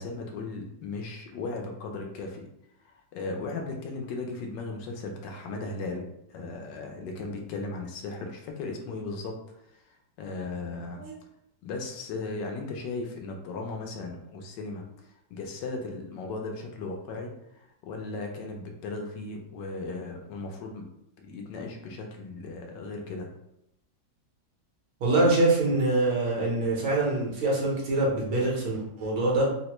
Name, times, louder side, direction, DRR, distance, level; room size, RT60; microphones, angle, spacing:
voice 1, 0.0-2.5 2.8-9.4 9.7-11.0 11.6-14.8 15.3-20.9 21.2-23.3, left 3 dB, 75° left, 2 dB, 1.2 m, -36 dB
voice 2, 25.0-29.4, right 2 dB, 75° right, -4 dB, 1.6 m, -24 dB
3.7 x 2.1 x 2.9 m, 0.79 s
omnidirectional pair, 2.0 m